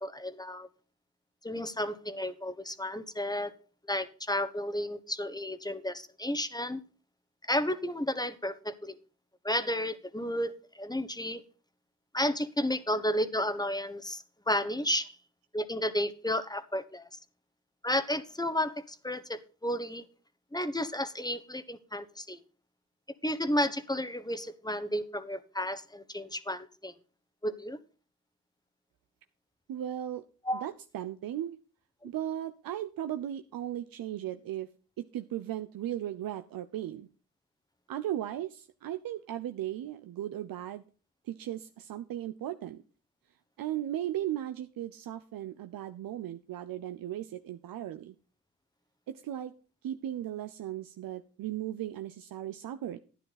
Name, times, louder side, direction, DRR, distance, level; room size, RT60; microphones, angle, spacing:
voice 1, 0.0-0.7 1.4-3.5 3.9-6.8 7.4-9.0 9.4-11.4 12.1-15.1 15.5-17.1 17.8-20.0 20.5-22.4 23.2-26.9 27.4-27.8 30.4-30.6, left 1 dB, 10° left, 13 dB, 1.3 m, -32 dB
voice 2, 29.7-30.2 30.6-31.6 32.0-34.7 35.0-37.1 37.9-40.8 41.3-42.8 43.6-48.1 49.1-49.5 49.8-53.0, right 12 dB, 75° right, 9 dB, 0.7 m, -36 dB
11.5 x 9.9 x 4.0 m, 0.36 s
supercardioid pair, 40°, 35 cm